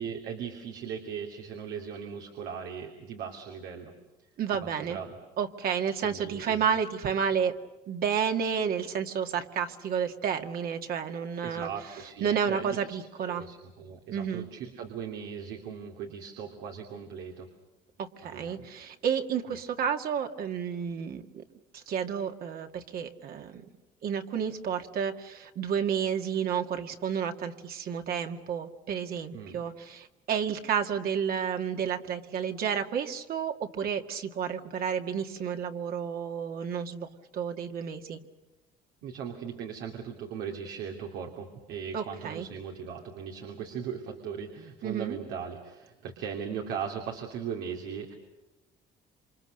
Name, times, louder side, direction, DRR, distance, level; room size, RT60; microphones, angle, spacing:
voice 1, 0.0-3.9 4.6-5.2 6.0-6.6 11.4-12.8 13.3-17.5 18.3-18.7 29.3-29.6 39.0-48.2, right 7 dB, 90° right, 2 dB, 2.9 m, -38 dB
voice 2, 4.4-5.0 5.4-7.5 7.9-11.7 12.2-13.5 14.1-14.5 18.0-21.4 21.7-23.6 24.0-38.2 41.9-42.5 44.8-45.2, right 7 dB, 60° right, 5 dB, 2.1 m, -31 dB
28.0 x 25.5 x 6.6 m, 1.1 s
cardioid pair, 110°, 17 cm